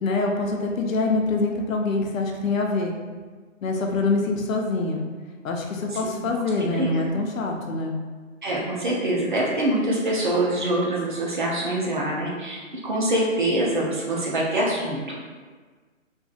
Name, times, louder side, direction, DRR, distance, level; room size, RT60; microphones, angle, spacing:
voice 1, 0.0-2.9 3.6-5.0 5.4-8.0, left 3 dB, 90° left, 1 dB, 0.6 m, -25 dB
voice 2, 8.4-15.2, right 1 dB, 40° right, -4 dB, 0.5 m, -24 dB
2.6 x 2.6 x 2.4 m, 1.5 s
hypercardioid pair, 165°, 39 cm